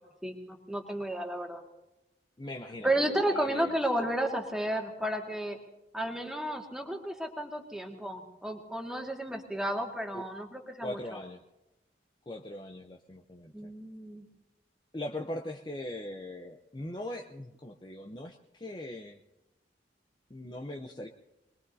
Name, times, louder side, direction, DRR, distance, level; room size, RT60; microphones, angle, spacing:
voice 1, 0.2-1.6 2.8-5.6 5.9-11.0 13.5-14.3, right 1 dB, 5° right, 1 dB, 1.9 m, -32 dB
voice 2, 2.4-3.8 10.1-10.3 10.8-11.4 12.3-13.7 14.9-19.2 20.3-21.1, left 1 dB, 25° left, 3 dB, 0.7 m, -40 dB
25.0 x 21.0 x 2.7 m, 0.98 s
head